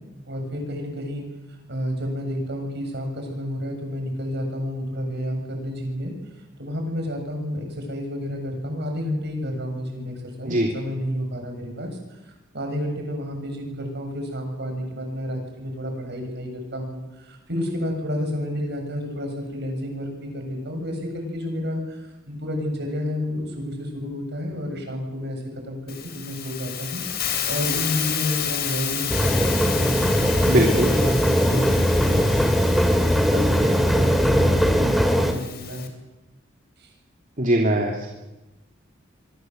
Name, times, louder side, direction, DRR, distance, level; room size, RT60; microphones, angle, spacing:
voice 1, 0.2-1.2 1.7-6.1 6.6-32.5 33.0-35.9 36.8-36.9, equal, 60° right, 3 dB, 7.7 m, -30 dB
Hiss, 25.9-35.9, left 9 dB, 55° left, 3.7 m, -31 dB
sound 1, 29.1-35.3, equal, ahead, 2.5 m, -20 dB
voice 2, 30.5-30.9 37.4-38.1, right 1 dB, 45° right, 0 dB, 3.1 m, -21 dB
25.0 x 24.0 x 8.1 m, 1.0 s
head